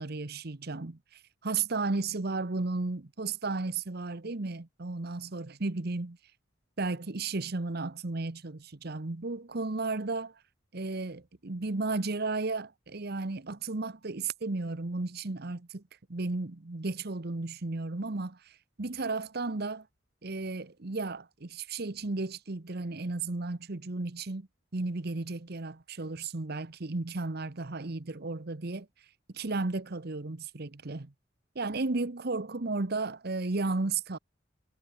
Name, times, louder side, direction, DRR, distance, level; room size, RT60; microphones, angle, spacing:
voice 1, 0.0-6.1 6.8-10.4 10.7-15.8 16.1-19.9 20.2-24.5 24.7-28.9 29.3-31.1 31.5-34.2, right 3 dB, 55° right, 1.1 m, -34 dB
head